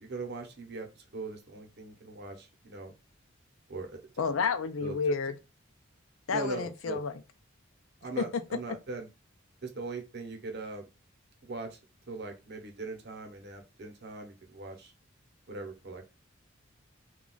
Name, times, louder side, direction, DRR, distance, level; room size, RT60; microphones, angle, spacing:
voice 1, 0.0-2.9 3.7-4.0 4.8-5.0 6.3-7.0 8.0-9.1 9.6-10.8 11.4-11.8 12.1-14.9 15.5-16.1, right 3 dB, 55° right, 0.8 m, -40 dB
voice 2, 4.2-5.4 6.3-7.1 8.2-8.4, left 5 dB, 75° left, 0.5 m, -30 dB
2.3 x 2.3 x 3.8 m
head